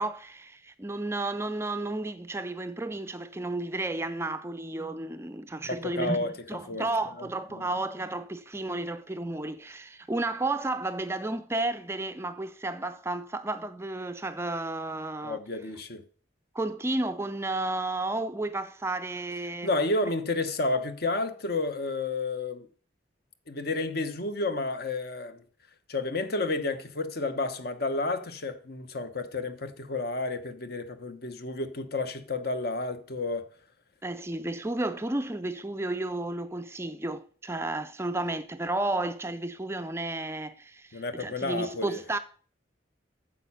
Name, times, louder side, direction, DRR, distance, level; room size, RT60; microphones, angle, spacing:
voice 1, 0.0-15.4 16.5-19.7 34.0-42.2, right 2 dB, 15° right, 0.4 m, -32 dB
voice 2, 5.6-6.3 6.7-6.8 7.2-7.3 7.5-7.7 15.2-16.0 19.6-22.7 23.5-25.4 25.9-33.4 40.9-42.0, left 2 dB, 55° left, 1.0 m, -31 dB
9.1 x 7.4 x 5.6 m
head